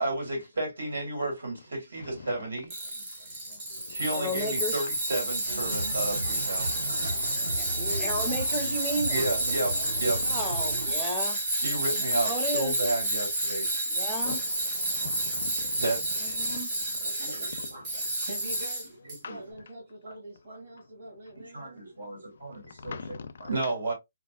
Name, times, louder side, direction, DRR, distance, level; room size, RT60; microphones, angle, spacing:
voice 1, 0.0-2.7 3.0-3.1 3.5-3.6 3.9-6.8 9.1-10.2 11.5-13.7 14.9-16.4 17.0-18.0 19.1-19.4 20.0-20.1 20.5-20.6 21.4-23.0 23.4-23.9, right 2 dB, 75° right, 2.2 m, -33 dB
voice 2, 2.0-2.3 3.7-4.0 6.7-7.2 9.9-10.0 14.2-14.4 14.7-15.8 16.4-18.3 19.2-19.4 21.3-21.4 22.4-23.5, left 5 dB, 45° left, 0.4 m, -44 dB
Tools, 2.7-19.2, right 1 dB, 20° right, 1.0 m, -30 dB
voice 3, 4.1-4.8 7.9-9.3 10.3-11.4 12.2-12.8 13.9-14.4 16.2-16.7, equal, 5° right, 0.6 m, -33 dB
sound 1, 5.4-10.9, right 1 dB, 60° right, 1.0 m, -35 dB
voice 4, 7.8-8.4 18.2-18.9 19.3-21.8, right 1 dB, 40° right, 2.2 m, -43 dB
4.0 x 2.4 x 2.3 m
hypercardioid pair, 180°, 0 cm